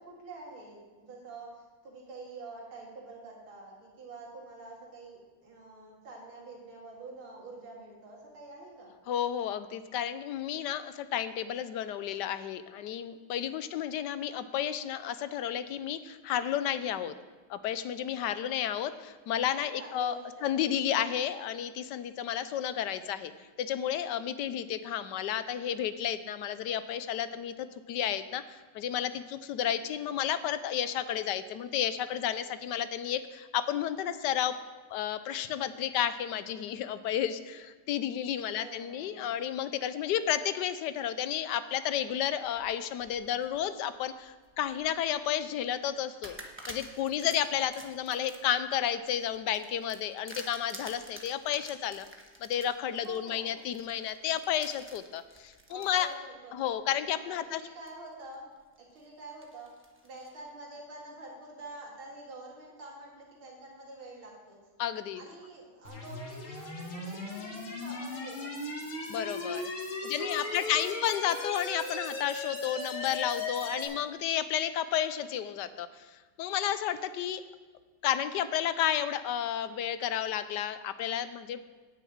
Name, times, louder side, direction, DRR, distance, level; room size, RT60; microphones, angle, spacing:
voice 1, 0.0-8.9 13.4-13.7 19.8-20.5 38.5-39.3 53.0-53.6 55.7-56.9 57.3-58.5 58.8-59.7 60.0-64.6 65.1-68.5 70.1-71.0 73.6-74.1, right 2 dB, 85° right, -3 dB, 3.0 m, -47 dB
voice 2, 9.1-17.1 17.5-20.2 20.4-23.3 23.6-34.5 34.9-46.4 46.7-52.1 52.4-56.1 56.5-57.6 64.8-65.2 69.1-69.7 70.0-77.4 78.0-81.7, left 10 dB, 70° left, 12 dB, 1.1 m, -32 dB
sound 1, 42.3-43.6 44.1-45.1 45.5-45.7 46.2-56.1 56.7-56.8 57.9-58.3 58.8-60.4, right 1 dB, 10° right, 0.8 m, -49 dB
sound 2, 65.8-73.8, left 2 dB, 90° left, 2.6 m, -37 dB
9.4 x 6.6 x 8.6 m, 1.4 s
omnidirectional pair, 2.2 m